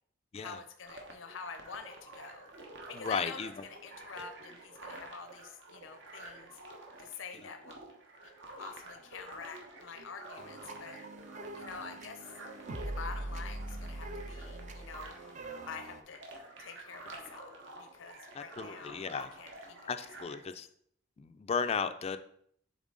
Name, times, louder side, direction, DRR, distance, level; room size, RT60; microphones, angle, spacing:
voice 1, 0.3-2.5 2.9-6.6 7.0-7.8 8.6-11.0 11.5-12.2 13.0-15.1 15.6-16.2 16.6-19.9, left 5 dB, 85° left, 7 dB, 0.6 m, -47 dB
sound 1, 0.8-20.5, right 2 dB, 70° right, 1.2 m, -50 dB
voice 2, 2.9-3.5 18.3-19.3 19.9-20.7 21.2-22.2, left 5 dB, 30° left, 10 dB, 0.3 m, -35 dB
sound 2, 10.4-16.0, right 1 dB, 40° right, 0.5 m, -42 dB
7.2 x 3.9 x 3.8 m, 0.66 s
head